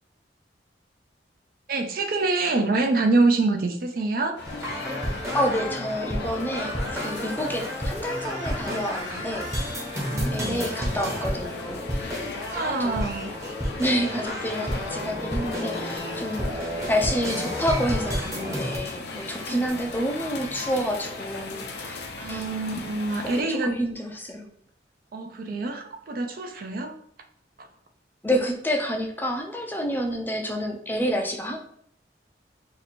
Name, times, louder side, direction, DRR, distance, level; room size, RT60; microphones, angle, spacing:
voice 1, 1.7-4.4 10.0-10.6 12.0-12.1 12.5-13.3 19.5-19.7 22.2-23.7 25.1-26.9 27.6-27.7, right 3 dB, 55° right, 5 dB, 0.4 m, -26 dB
sound 1, 4.4-23.4, left 3 dB, 65° left, 0.6 m, -38 dB
sound 2, 4.4-18.8, equal, 15° right, 0.8 m, -31 dB
voice 2, 5.3-9.8 10.3-12.2 12.8-12.9 13.8-22.0 22.3-22.4 23.2-24.5 28.2-31.6, equal, 10° left, 2 dB, 0.4 m, -29 dB
2.9 x 2.6 x 4.1 m, 0.68 s
head